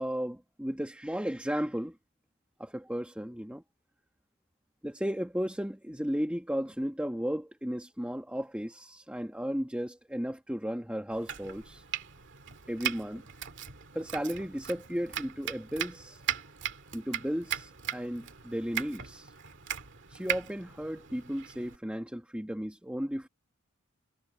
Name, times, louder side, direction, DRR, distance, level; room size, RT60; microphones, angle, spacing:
voice 1, 0.0-2.0 2.6-3.6 4.8-11.8 12.7-13.2 13.9-16.2 16.9-19.3 20.1-23.3, equal, 5° right, 1.5 m, -34 dB
Domestic sounds home sounds, 11.1-21.8, right 9 dB, 60° right, 2.2 m, -39 dB
head